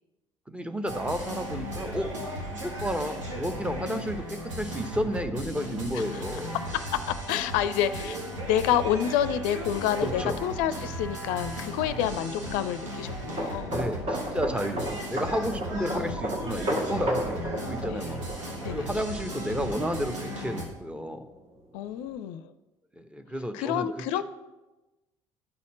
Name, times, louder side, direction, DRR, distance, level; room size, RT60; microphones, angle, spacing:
voice 1, 0.5-2.1 2.5-6.6 10.2-10.4 13.7-18.2 18.7-21.2 22.9-23.9, equal, 5° right, 8 dB, 0.8 m, -32 dB
sound 1, 0.9-20.6, equal, 80° right, 1.6 m, -36 dB
voice 2, 7.1-8.2 8.5-13.8 15.8-16.2 17.9-18.1 18.6-19.0 21.7-22.4 23.5-24.2, left 10 dB, 55° left, 13 dB, 0.5 m, -28 dB
sound 2, 13.3-20.8 21.1-21.3, right 1 dB, 40° right, 1.7 m, -34 dB
9.6 x 4.2 x 7.3 m, 1.1 s
figure-of-eight pair, 60°, 16 cm